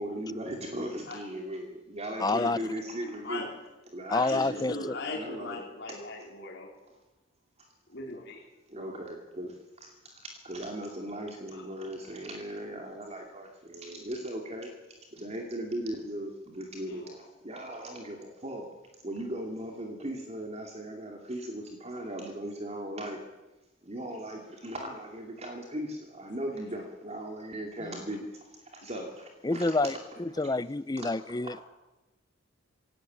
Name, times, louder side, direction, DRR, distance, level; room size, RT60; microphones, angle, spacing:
voice 1, 0.0-3.4 3.9-5.6 8.7-9.5 9.8-9.9 10.4-14.7 15.1-17.0 17.4-18.7 19.0-23.2 23.8-28.3 28.7-30.0 30.3-30.5 31.0-31.6, right 1 dB, 35° right, 2 dB, 2.6 m, -38 dB
voice 2, 2.2-2.6 4.1-4.8 29.4-29.9 30.2-31.6, left 3 dB, 20° left, 17 dB, 0.6 m, -28 dB
voice 3, 4.1-6.7 7.9-8.4 11.5-11.6 17.0-17.2 28.9-29.1, left 3 dB, 60° left, -2 dB, 4.3 m, -39 dB
17.0 x 17.0 x 9.2 m, 1.1 s
head